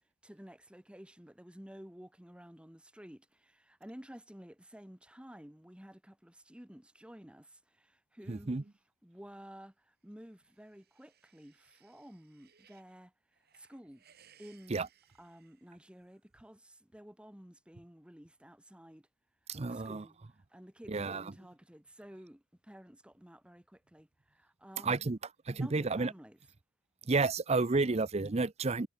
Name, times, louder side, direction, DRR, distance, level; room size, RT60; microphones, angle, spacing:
voice 1, 0.2-8.5 9.0-13.1 13.5-14.0 14.4-14.9 15.2-19.1 19.7-20.1 20.5-25.1 25.5-26.4 27.9-28.0, equal, 5° right, 1.2 m, -53 dB
voice 2, 8.3-8.6 14.7-14.9 19.5-20.0 20.9-21.3 24.8-25.2 25.5-26.1 27.1-28.9, right 3 dB, 30° right, 0.6 m, -31 dB
sound 1, 10.2-12.9 13.3-16.2, right 9 dB, 50° right, 6.8 m, -66 dB
head